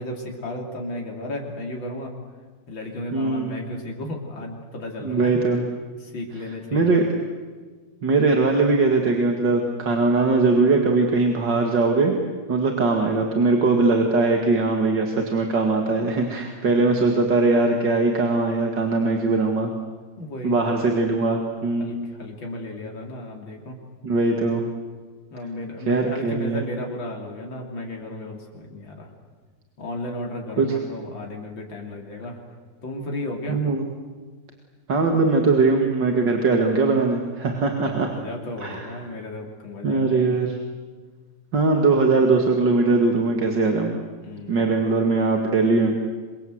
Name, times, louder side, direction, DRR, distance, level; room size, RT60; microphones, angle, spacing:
voice 1, 0.0-2.1 2.7-5.4 6.0-6.9 16.4-17.1 20.2-20.7 21.8-23.8 25.3-29.1 29.8-32.4 32.8-33.7 37.8-40.4 44.2-44.7, left 1 dB, 90° left, 0 dB, 4.1 m, -34 dB
voice 2, 3.1-3.5 5.0-5.6 6.7-7.0 8.0-12.1 12.5-19.7 20.4-22.1 24.0-24.6 25.9-26.6 30.6-30.7 33.5-33.8 34.9-38.1 38.6-38.9 39.8-40.6 41.5-44.0 44.5-46.1, right 3 dB, 70° right, 3 dB, 2.8 m, -20 dB
27.5 x 25.0 x 8.0 m, 1.5 s
omnidirectional pair, 2.0 m